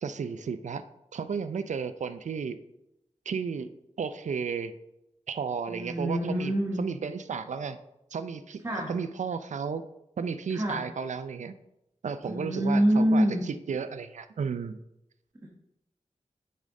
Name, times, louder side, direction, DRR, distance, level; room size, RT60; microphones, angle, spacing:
voice 1, 0.0-0.8 1.1-2.6 3.3-4.7 5.3-7.8 8.1-8.6 8.9-9.8 10.2-11.5 12.0-14.8, right 6 dB, 75° right, 11 dB, 0.4 m, -33 dB
voice 2, 5.7-6.8 8.6-8.9 10.5-10.8 12.2-13.4 15.4-15.5, equal, 25° right, -2 dB, 1.1 m, -25 dB
8.4 x 5.4 x 3.7 m, 0.86 s
wide cardioid pair, 100°, 13 cm